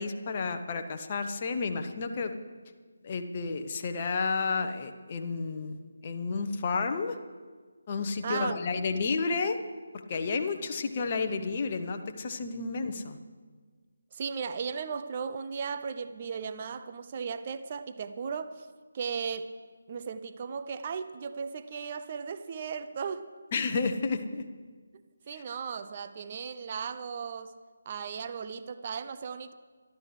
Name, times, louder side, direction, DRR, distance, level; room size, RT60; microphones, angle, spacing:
voice 1, 0.0-2.3 3.0-5.8 6.0-7.1 7.9-9.6 10.1-13.2 23.5-24.4, left 4 dB, 30° left, 6 dB, 0.9 m, -31 dB
voice 2, 8.2-8.6 12.8-13.2 14.1-18.7 18.9-19.5 19.9-23.3 25.3-27.5 27.9-29.5, right 6 dB, 30° right, 11 dB, 0.6 m, -36 dB
23.5 x 12.5 x 3.3 m, 1.5 s
figure-of-eight pair, 155°, 0 cm